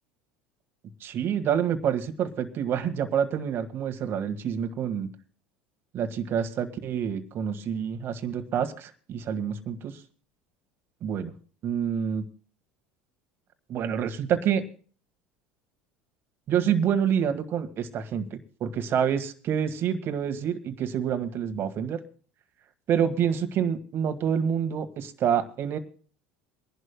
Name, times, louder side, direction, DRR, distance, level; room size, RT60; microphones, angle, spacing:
voice 1, 1.0-5.1 5.9-10.0 11.0-11.3 11.6-12.2 13.7-14.6 16.5-22.0 22.9-25.8, right 8 dB, 50° right, 8 dB, 1.6 m, -27 dB
25.0 x 11.0 x 2.2 m, 0.41 s
hypercardioid pair, 80°, 5 cm